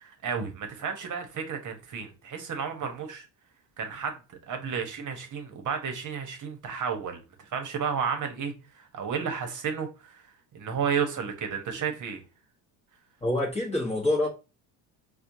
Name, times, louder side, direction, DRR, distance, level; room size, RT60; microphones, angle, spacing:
voice 1, 0.0-3.3 3.8-10.2 10.5-12.2, right 6 dB, 40° right, 1.0 m, -32 dB
voice 2, 13.2-14.3, left 1 dB, 15° left, 1.1 m, -26 dB
4.3 x 2.4 x 2.6 m
supercardioid pair, 85°, 46 cm